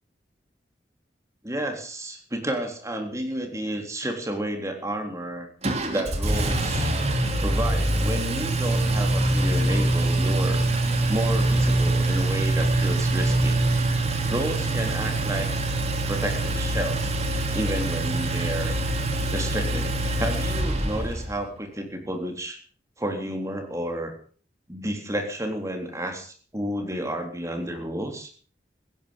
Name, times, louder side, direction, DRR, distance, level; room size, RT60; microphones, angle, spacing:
voice 1, 1.4-5.5 5.9-6.9 7.4-10.6 11.1-13.6 14.3-15.5 16.1-17.2 17.5-18.7 19.3-22.6 23.0-24.1 24.7-28.3, right 1 dB, 15° right, 4 dB, 3.7 m, -31 dB
Engine, 5.6-21.3, right 2 dB, 35° right, 3.2 m, -24 dB
16.5 x 15.5 x 5.4 m, 0.42 s
head